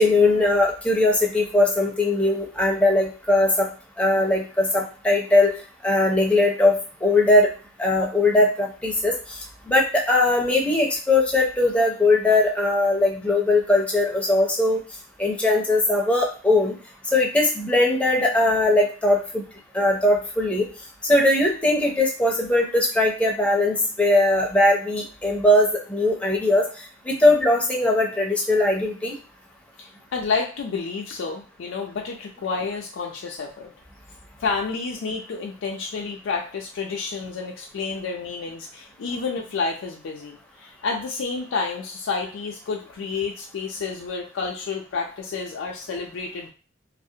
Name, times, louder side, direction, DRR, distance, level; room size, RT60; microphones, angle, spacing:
voice 1, 0.0-3.7 4.0-5.5 5.8-7.5 7.8-9.4 9.7-14.8 15.2-16.8 17.1-19.4 19.7-20.7 21.1-26.7 27.1-29.1, left 2 dB, 5° left, -1 dB, 0.5 m, -20 dB
voice 2, 29.8-33.7 34.4-46.5, left 4 dB, 80° left, 0 dB, 0.4 m, -30 dB
2.4 x 2.0 x 2.7 m, 0.36 s
head